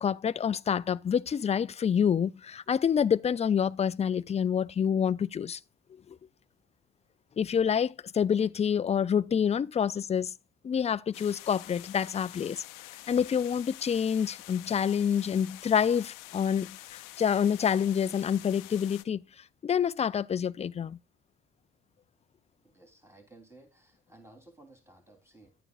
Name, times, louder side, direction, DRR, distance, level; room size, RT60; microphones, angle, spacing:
voice 1, 0.0-5.6 6.1-6.2 7.4-10.3 10.6-12.6 13.1-19.2 19.6-21.0, left 8 dB, 20° left, 0.3 m, -27 dB
sound 1, 11.1-19.0, left 19 dB, 70° left, 0.6 m, -47 dB
voice 2, 22.6-25.6, right 2 dB, 10° right, 3.3 m, -56 dB
11.0 x 9.1 x 2.4 m
hypercardioid pair, 55°, 34 cm